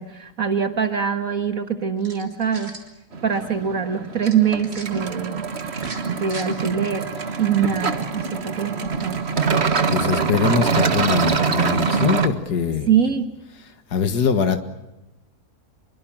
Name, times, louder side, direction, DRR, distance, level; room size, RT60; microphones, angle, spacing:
voice 1, 0.0-2.7 3.2-5.5 6.1-7.1 7.4-9.3 12.9-13.3, right 7 dB, 60° right, 7 dB, 2.0 m, -23 dB
sound 1, 2.0-2.9 4.2-4.9 5.7-6.5, right 3 dB, 75° right, 4.2 m, -39 dB
sound 2, 3.1-12.3, right 5 dB, 40° right, 1.7 m, -24 dB
voice 2, 9.9-12.9 13.6-14.6, left 6 dB, 85° left, 8 dB, 2.2 m, -23 dB
26.5 x 24.0 x 7.4 m, 0.98 s
omnidirectional pair, 1.7 m